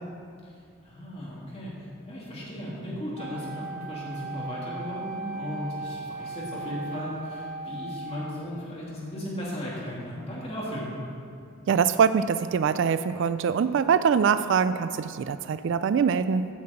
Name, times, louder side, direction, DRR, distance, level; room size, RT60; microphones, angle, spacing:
voice 1, 0.4-1.8 2.1-10.9, equal, 30° left, -6 dB, 2.7 m, -36 dB
Wind instrument woodwind instrument, 3.2-8.6, right 3 dB, 45° right, 0.8 m, -38 dB
voice 2, 11.7-16.5, right 6 dB, 60° right, 13 dB, 0.3 m, -23 dB
9.4 x 5.8 x 7.7 m, 2.4 s
head